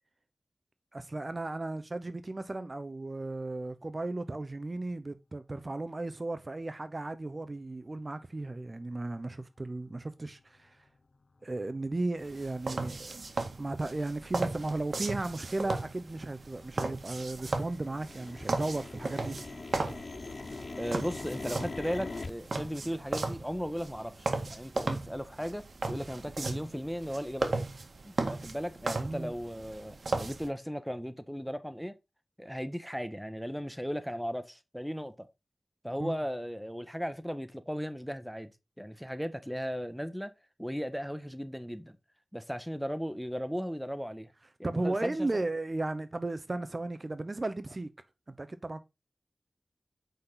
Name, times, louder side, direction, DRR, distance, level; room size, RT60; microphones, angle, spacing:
voice 1, 0.9-10.8 11.4-13.2 13.6-19.4 29.0-29.3 36.0-36.2 44.6-47.9 48.4-48.8, right 2 dB, 45° right, 1.0 m, -35 dB
sound 1, 11.5-11.6 12.2-12.3 12.9-13.2 13.7-13.8 14.0-14.6 14.9-17.2 17.5-22.3, left 3 dB, 70° left, 0.7 m, -43 dB
sound 2, 12.2-30.5, right 3 dB, 75° right, 1.9 m, -36 dB
voice 2, 20.8-27.7 28.0-31.9 32.4-35.3 35.8-38.5 38.8-40.3 40.6-42.0 42.3-44.3 44.6-45.3, equal, ahead, 1.5 m, -36 dB
8.6 x 5.8 x 3.9 m
wide cardioid pair, 50°, 0 cm